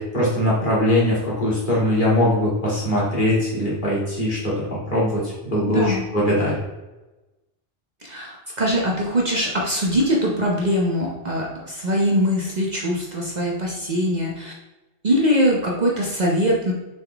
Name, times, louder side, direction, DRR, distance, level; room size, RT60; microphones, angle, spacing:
voice 1, 0.0-6.6, left 1 dB, 45° left, -8 dB, 2.5 m, -21 dB
voice 2, 5.7-6.0 8.0-14.5 15.0-16.7, equal, 40° right, -3 dB, 1.0 m, -22 dB
6.9 x 4.3 x 3.4 m, 1.1 s
omnidirectional pair, 1.2 m